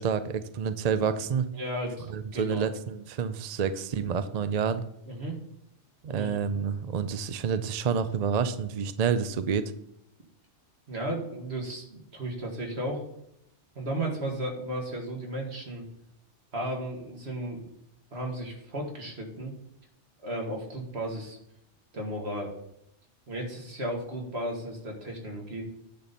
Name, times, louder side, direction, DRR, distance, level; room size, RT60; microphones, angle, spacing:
voice 1, 0.0-1.5 2.1-4.8 6.0-9.7, right 6 dB, 50° right, 11 dB, 0.5 m, -28 dB
voice 2, 1.5-2.7 5.1-5.4 6.1-6.4 10.9-13.0 13.8-15.8 16.5-17.7 18.1-19.5 20.2-21.4 21.9-22.5 23.3-25.6, right 1 dB, 65° right, 0 dB, 2.2 m, -34 dB
9.8 x 4.2 x 6.9 m, 0.77 s
omnidirectional pair, 1.2 m